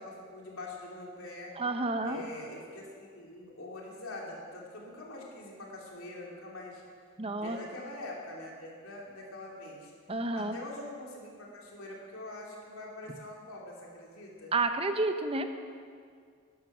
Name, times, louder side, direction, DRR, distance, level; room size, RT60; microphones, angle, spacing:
voice 1, 0.0-1.5 2.0-6.8 7.4-9.9 10.3-14.5, left 2 dB, 85° left, -2 dB, 3.0 m, -44 dB
voice 2, 1.6-2.2 7.2-7.6 10.1-10.6 14.5-15.5, right 2 dB, 25° right, 7 dB, 0.7 m, -30 dB
12.0 x 12.0 x 6.1 m, 2.2 s
head